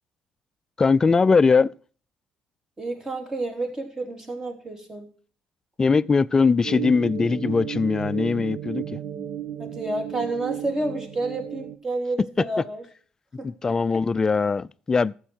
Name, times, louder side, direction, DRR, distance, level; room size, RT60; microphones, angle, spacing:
voice 1, 0.8-1.7 5.8-9.0 13.4-15.1, left 4 dB, 25° left, 0.4 m, -21 dB
voice 2, 2.8-5.1 9.6-12.8 13.4-13.5 13.9-14.0, right 2 dB, 20° right, 3.3 m, -30 dB
sound 1, 6.6-11.8, right 11 dB, 70° right, 1.1 m, -33 dB
12.5 x 8.0 x 4.4 m
supercardioid pair, 85°, 2 cm